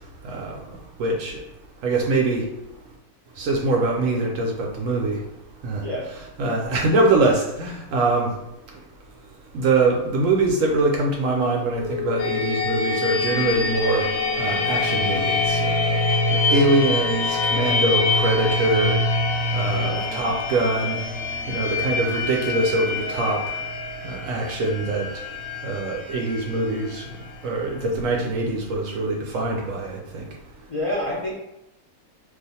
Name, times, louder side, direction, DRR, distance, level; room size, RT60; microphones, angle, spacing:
voice 1, 0.2-0.6 1.0-1.4 1.8-2.4 3.4-5.2 5.6-5.8 6.4-8.3 9.5-14.1 14.4-15.8 16.3-18.9 19.5-21.0 21.5-23.4 24.0-25.1 25.6-27.0 27.4-30.2, right 2 dB, 70° right, 0 dB, 0.9 m, -23 dB
Wind instrument woodwind instrument, 11.7-18.8, left 11 dB, 65° left, 0.8 m, -32 dB
sound 1, 12.2-27.8, left 2 dB, 90° left, 1.1 m, -25 dB
voice 2, 19.7-20.3 30.7-31.4, left 1 dB, 40° left, -7 dB, 0.4 m, -29 dB
2.5 x 2.4 x 4.0 m, 0.91 s
omnidirectional pair, 1.6 m